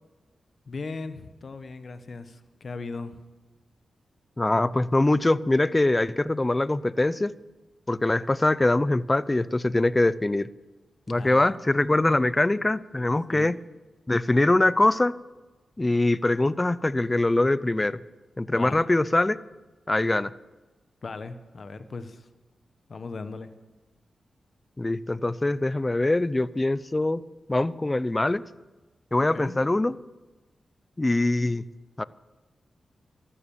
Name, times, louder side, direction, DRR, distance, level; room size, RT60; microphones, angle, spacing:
voice 1, 0.7-3.2 11.1-11.5 13.0-13.5 18.5-18.8 21.0-22.3 22.9-23.5 29.2-29.5, left 4 dB, 60° left, 11 dB, 1.1 m, -38 dB
voice 2, 4.4-7.3 7.9-10.5 11.1-13.6 14.1-15.1 15.8-18.0 18.4-19.4 19.9-20.3 24.8-27.2 27.5-28.4 29.1-29.9 31.0-31.6 32.0-32.1, left 2 dB, 25° left, 18 dB, 0.6 m, -23 dB
14.0 x 12.5 x 7.1 m, 1.2 s
cardioid pair, 50°, 0 cm